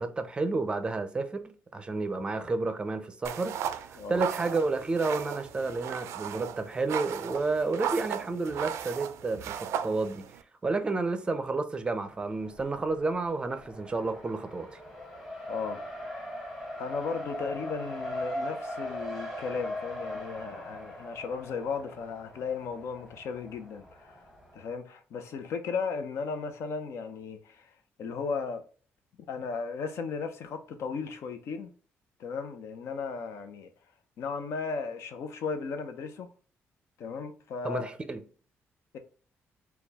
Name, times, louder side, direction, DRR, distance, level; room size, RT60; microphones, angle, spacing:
voice 1, 0.0-1.4 1.7-10.3 10.6-14.8 37.6-38.2, right 3 dB, 20° right, 0.5 m, -31 dB
sound 1, 3.2-10.4, right 9 dB, 85° right, 0.4 m, -36 dB
Race car auto racing, 12.1-24.7, left 1 dB, 5° left, 1.1 m, -40 dB
voice 2, 15.5-15.8 16.8-24.2 24.5-27.7 28.0-28.6 29.3-31.7 32.2-33.7 34.2-36.3 37.0-37.8 38.9-39.0, left 5 dB, 70° left, 0.7 m, -35 dB
4.3 x 2.3 x 3.5 m
cardioid pair, 135°, 5 cm